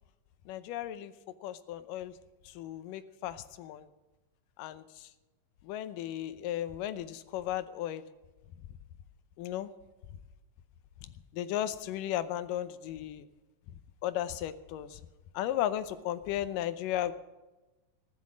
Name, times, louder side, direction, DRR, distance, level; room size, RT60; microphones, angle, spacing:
voice 1, 0.5-1.1 1.4-2.1 2.5-3.9 4.6-5.1 5.6-8.0 9.4-9.7 11.3-13.3 14.0-15.0 15.3-17.1, left 12 dB, 80° left, 12 dB, 2.4 m, -35 dB
15.0 x 11.5 x 6.2 m, 1.1 s
omnidirectional pair, 3.9 m